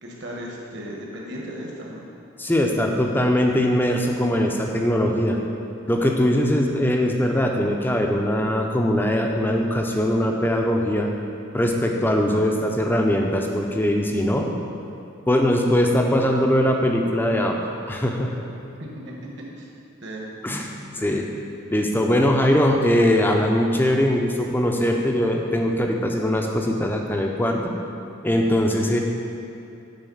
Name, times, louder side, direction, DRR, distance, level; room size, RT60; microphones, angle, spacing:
voice 1, 0.0-2.0 18.8-19.1 19.6-19.7 20.0-20.3 21.0-21.2, equal, 55° right, -3 dB, 1.4 m, -36 dB
voice 2, 2.4-5.4 5.9-11.1 11.5-14.5 15.3-17.6 17.9-18.4 20.4-20.7 21.0-21.2 21.7-27.7 28.2-29.0, equal, 10° left, 2 dB, 0.5 m, -21 dB
9.1 x 4.3 x 5.5 m, 2.8 s
head